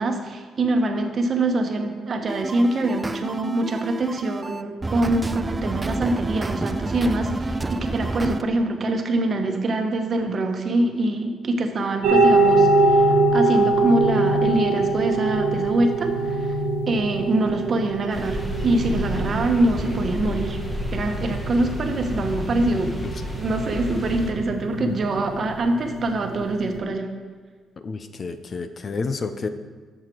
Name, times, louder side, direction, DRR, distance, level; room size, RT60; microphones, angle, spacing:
voice 1, 0.0-16.6 16.9-20.6 20.9-22.9 23.3-27.1, right 2 dB, 45° right, 4 dB, 1.1 m, -24 dB
sound 1, 2.3-8.4, right 2 dB, 20° right, 0.4 m, -29 dB
sound 2, 12.0-26.8, right 2 dB, 85° right, 1.1 m, -23 dB
sound 3, 18.1-24.3, left 2 dB, 15° left, 1.6 m, -31 dB
voice 2, 27.8-29.5, left 4 dB, 45° left, 10 dB, 0.6 m, -30 dB
7.8 x 6.7 x 4.5 m, 1.5 s
cardioid pair, 90°, 0 cm